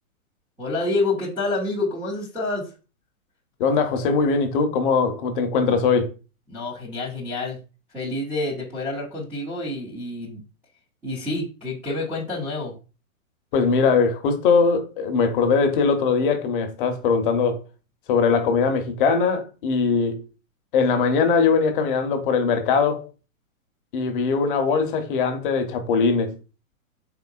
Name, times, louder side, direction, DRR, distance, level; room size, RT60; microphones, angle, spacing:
voice 1, 0.6-2.7 6.5-7.6 7.9-10.4 11.0-12.7, left 2 dB, 5° right, 0.4 m, -28 dB
voice 2, 3.6-6.1 13.5-17.6 18.1-20.2 20.7-23.1 23.9-26.4, left 5 dB, 40° left, 0.6 m, -21 dB
3.7 x 3.6 x 2.3 m
hypercardioid pair, 140°, 42 cm